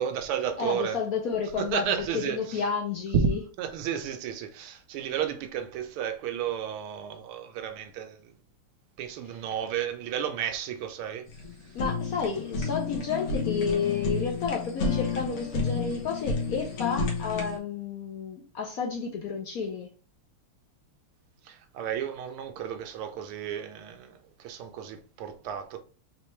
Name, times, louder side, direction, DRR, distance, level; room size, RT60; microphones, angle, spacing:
voice 1, 0.0-1.0 1.6-2.6 3.1-3.3 3.6-8.3 9.0-11.3 21.4-25.8, right 8 dB, 80° right, 1.6 m, -32 dB
voice 2, 0.6-3.4 11.7-19.9, left 5 dB, 70° left, 0.8 m, -31 dB
Fire, 11.3-17.6, left 4 dB, 90° left, 2.1 m, -31 dB
5.0 x 3.3 x 3.1 m
omnidirectional pair, 2.4 m